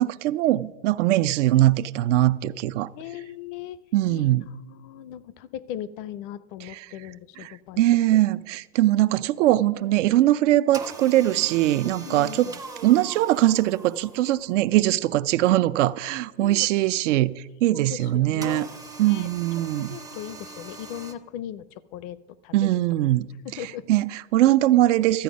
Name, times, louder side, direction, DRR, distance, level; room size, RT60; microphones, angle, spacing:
voice 1, 0.0-2.9 3.9-4.4 6.7-6.9 7.4-12.5 12.8-18.7 19.0-20.0 22.5-23.3 23.6-25.2, right 14 dB, 85° right, 0.5 m, -21 dB
voice 2, 3.0-3.8 4.1-7.8 11.8-12.6 14.6-14.7 15.4-15.5 16.4-16.7 17.7-18.7 19.1-19.3 19.8-21.6 21.9-22.2 22.4-22.7 23.4-23.9, left 11 dB, 45° left, 0.5 m, -38 dB
sound 1, 10.7-14.7 18.4-21.1, right 3 dB, 10° right, 0.4 m, -41 dB
13.0 x 8.5 x 5.2 m
supercardioid pair, 140°, 35 cm